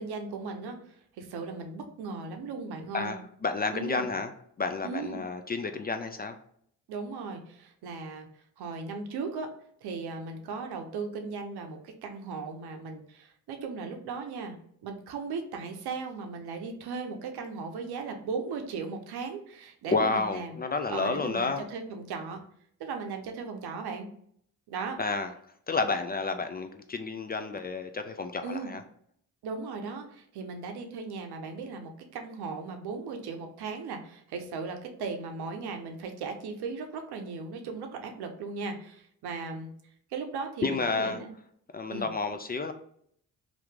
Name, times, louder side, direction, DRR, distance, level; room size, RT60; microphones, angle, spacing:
voice 1, 0.0-3.2 3.7-4.0 4.8-5.2 6.9-8.3 8.6-9.5 9.8-14.6 14.8-20.6 20.9-22.4 22.8-24.1 24.7-25.0 28.4-28.7 29.4-39.7 40.1-41.3 41.9-42.1, right 4 dB, 75° right, 5 dB, 0.7 m, -37 dB
voice 2, 2.9-4.3 4.6-6.3 19.9-21.7 25.0-25.3 25.7-28.8 40.6-41.2 41.7-42.7, left 4 dB, 25° left, 7 dB, 0.3 m, -30 dB
2.9 x 2.5 x 3.4 m, 0.66 s
supercardioid pair, 50°, 40 cm